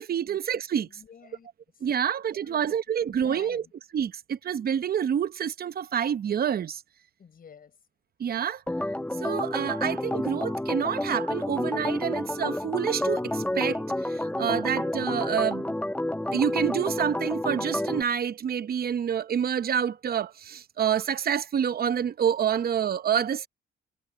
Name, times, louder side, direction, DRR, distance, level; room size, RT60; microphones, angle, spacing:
voice 1, 0.0-0.9 1.8-3.6 3.9-6.8 8.2-8.6 9.2-15.7 16.3-23.5, right 8 dB, 50° right, 0.9 m, -28 dB
voice 2, 0.8-1.5 1.7-2.2 2.4-3.7 7.2-7.8, left 6 dB, 45° left, 6.7 m, -51 dB
Organ, 8.7-18.0, left 1 dB, 5° left, 1.1 m, -29 dB
cardioid pair, 90°, 20 cm